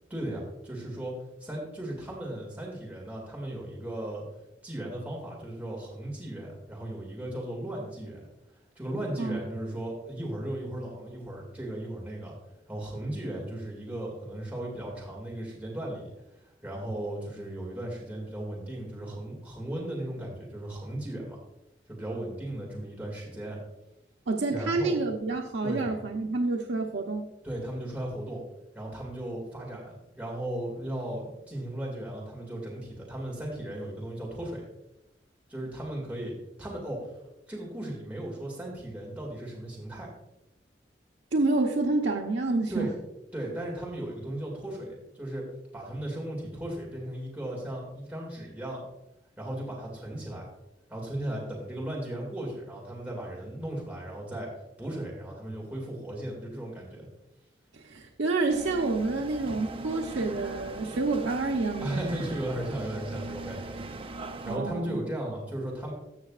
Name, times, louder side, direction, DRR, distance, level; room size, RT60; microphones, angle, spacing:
voice 1, 0.1-4.2 4.6-8.3 8.8-12.3 12.7-16.1 16.6-21.4 21.9-23.6 24.5-25.0 25.6-26.0 27.4-28.4 28.7-34.7 35.5-37.1 37.5-40.1 42.7-42.9 43.3-45.5 45.7-48.8 49.4-50.5 50.9-54.5 54.8-57.1 61.8-65.9, right 1 dB, 10° right, -3 dB, 2.2 m, -36 dB
voice 2, 24.3-27.3 41.3-42.9 57.7-62.2 64.5-65.0, right 3 dB, 90° right, 0 dB, 0.8 m, -28 dB
sound 1, 58.5-64.6, right 3 dB, 30° right, 0.5 m, -40 dB
14.5 x 6.1 x 2.4 m, 0.89 s
head